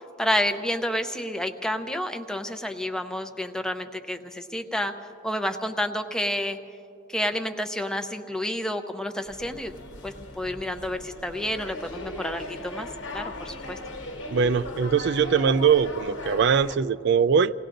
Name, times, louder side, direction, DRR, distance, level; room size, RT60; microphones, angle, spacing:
voice 1, 0.2-4.9 5.2-6.6 7.1-9.7 10.0-12.9 13.1-13.8, left 1 dB, 5° left, 6 dB, 0.6 m, -29 dB
sound 1, 9.3-16.8, left 1 dB, 70° left, 1.3 m, -38 dB
voice 2, 14.3-17.5, right 6 dB, 60° right, 15 dB, 0.4 m, -21 dB
29.5 x 18.0 x 2.6 m, 2.7 s
head